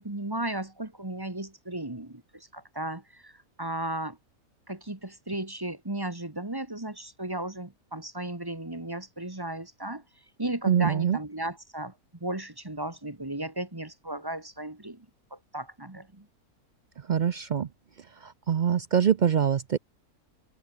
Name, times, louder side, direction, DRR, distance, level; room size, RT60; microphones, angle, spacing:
voice 1, 0.0-4.2 4.7-10.0 10.4-11.9 12.2-16.3, right 1 dB, 15° right, 1.5 m, -35 dB
voice 2, 10.7-11.2 17.1-17.7 18.2-19.8, right 8 dB, 80° right, 0.4 m, -24 dB
omnidirectional pair, 1.6 m